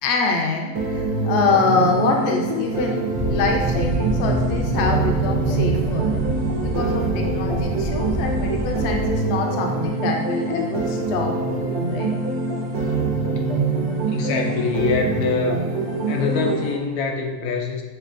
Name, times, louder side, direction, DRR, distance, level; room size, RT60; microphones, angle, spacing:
voice 1, 0.0-6.2 6.6-12.2, left 3 dB, 65° left, 2 dB, 0.7 m, -25 dB
sound 1, 0.7-16.7, right 3 dB, 85° right, 1.3 m, -25 dB
sound 2, 3.1-9.2, right 1 dB, 60° right, 0.5 m, -26 dB
voice 2, 14.1-15.6 16.0-17.8, left 4 dB, 85° left, 2 dB, 1.1 m, -24 dB
6.6 x 2.3 x 2.5 m, 1.2 s
omnidirectional pair, 1.5 m